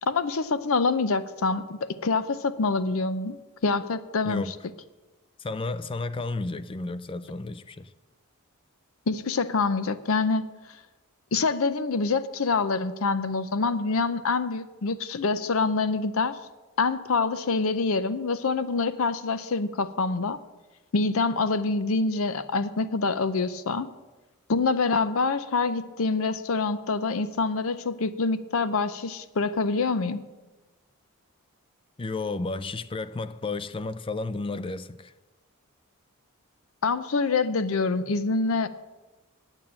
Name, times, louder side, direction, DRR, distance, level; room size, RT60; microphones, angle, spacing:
voice 1, 0.0-3.4 3.6-4.5 9.1-10.5 11.3-16.4 16.8-20.4 20.9-23.9 24.5-30.2 36.8-38.7, left 4 dB, 65° left, 0.6 m, -26 dB
voice 2, 5.4-7.9 32.0-35.1, left 3 dB, 25° left, 0.4 m, -32 dB
9.0 x 8.9 x 8.7 m
head